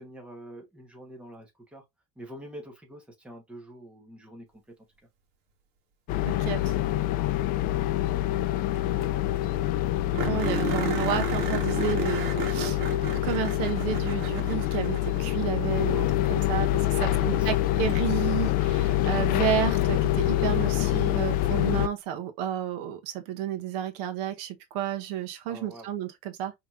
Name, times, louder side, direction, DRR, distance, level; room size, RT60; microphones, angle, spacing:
voice 1, 0.0-1.8 2.2-4.5 9.1-9.2 9.6-10.0 16.6-17.9 25.5-25.9, right 1 dB, 5° right, 1.1 m, -45 dB
sound 1, 6.1-21.9, left 14 dB, 45° left, 0.4 m, -26 dB
voice 2, 6.3-6.7 10.2-12.8 13.2-26.5, right 11 dB, 85° right, 0.9 m, -31 dB
sound 2, 8.7-8.8 9.0-9.1 9.4-9.5 10.1-15.6 17.9-18.0 20.8-20.9, right 7 dB, 55° right, 1.3 m, -34 dB
5.1 x 2.9 x 2.4 m
cardioid pair, 160°, 20 cm